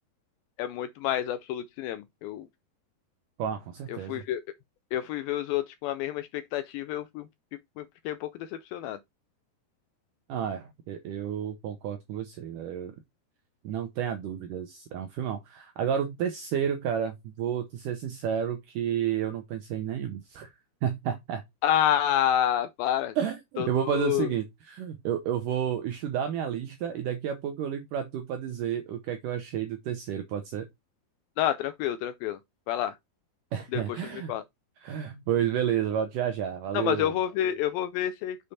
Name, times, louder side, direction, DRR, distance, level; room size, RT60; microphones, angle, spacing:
voice 1, 0.6-2.5 3.9-4.4 4.9-7.3 7.8-9.0 21.6-23.2 23.6-24.3 31.4-32.4 32.7-33.0 33.7-34.4 36.7-38.4, left 11 dB, 85° left, 2.1 m, -29 dB
voice 2, 3.4-4.2 10.3-12.9 13.6-20.5 20.8-21.4 23.2-30.7 33.5-34.4 34.8-37.1, right 9 dB, 80° right, 1.9 m, -31 dB
6.6 x 5.1 x 4.2 m
omnidirectional pair, 4.7 m